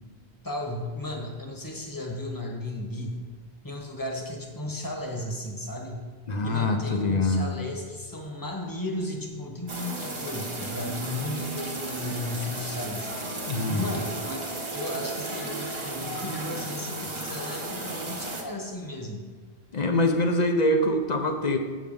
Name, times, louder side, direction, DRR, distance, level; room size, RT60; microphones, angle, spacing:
voice 1, 0.4-3.2 3.6-6.1 6.4-13.4 13.7-19.3, left 1 dB, 20° left, 1 dB, 1.1 m, -35 dB
voice 2, 6.3-7.5 13.5-13.8 19.7-21.6, left 1 dB, 45° left, 5 dB, 0.7 m, -24 dB
sound 1, 9.7-18.4, right 2 dB, 30° right, 1.0 m, -34 dB
8.0 x 5.1 x 5.4 m, 1.4 s
omnidirectional pair, 1.1 m